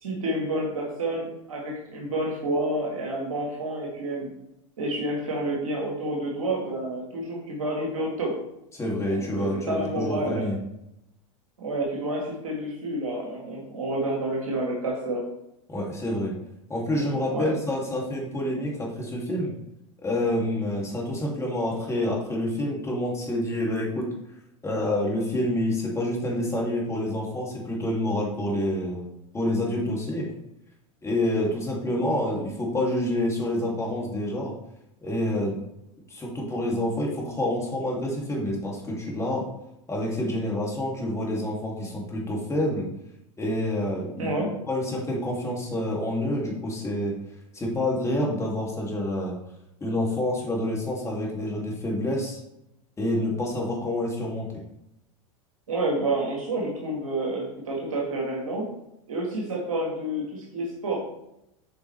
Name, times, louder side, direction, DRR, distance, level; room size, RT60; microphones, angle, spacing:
voice 1, 0.0-4.3 4.8-8.4 9.1-10.5 11.6-15.3 17.3-17.5 44.2-44.5 55.7-58.7 59.1-61.0, right 1 dB, 85° right, -2 dB, 1.8 m, -29 dB
voice 2, 8.7-10.6 15.7-16.3 16.7-19.5 20.0-24.1 24.6-29.1 29.3-30.3 31.0-34.5 35.0-35.6 36.1-39.4 39.9-42.8 43.4-44.4 44.7-47.1 47.5-49.3 49.8-52.4 53.0-54.5, left 1 dB, 15° left, -2 dB, 2.6 m, -27 dB
7.9 x 5.1 x 3.4 m, 0.84 s
hypercardioid pair, 95°, 17 cm